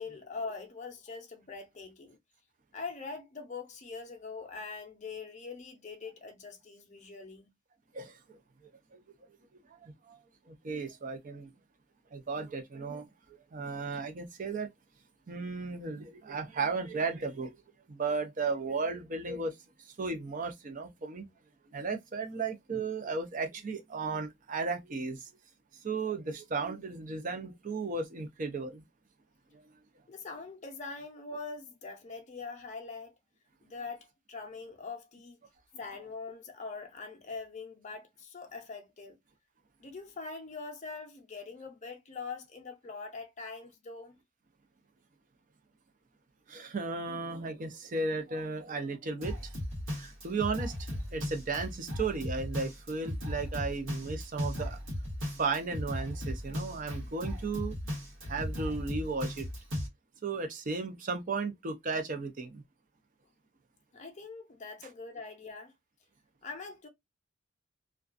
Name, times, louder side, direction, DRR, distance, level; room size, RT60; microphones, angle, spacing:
voice 1, 0.0-2.2 2.7-7.5 30.1-33.1 33.6-35.4 35.8-39.2 39.8-44.2 63.9-65.7 66.4-66.9, left 4 dB, 35° left, 0.6 m, -43 dB
voice 2, 7.9-8.4 8.9-9.0 9.7-11.5 12.1-13.1 13.5-14.7 15.3-17.6 17.9-19.6 19.8-21.3 21.7-25.3 25.8-28.8 29.5-29.6 46.5-49.5 50.0-54.8 55.4-57.8 58.2-59.5 60.2-62.6, right 4 dB, 40° right, 0.5 m, -35 dB
Drum kit, 49.2-59.9, equal, 80° right, 1.1 m, -37 dB
2.3 x 2.3 x 2.4 m
head